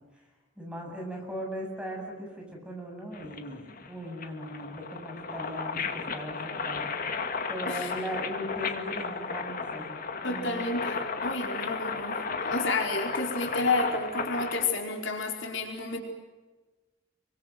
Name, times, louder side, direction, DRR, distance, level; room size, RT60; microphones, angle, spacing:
voice 1, 0.6-9.9 10.2-10.6, equal, 5° right, 0 dB, 7.7 m, -39 dB
sound 1, 3.1-14.6, left 4 dB, 45° left, 2.1 m, -34 dB
voice 2, 10.2-16.0, left 3 dB, 75° left, 2 dB, 4.6 m, -30 dB
27.0 x 24.5 x 7.9 m, 1.2 s
head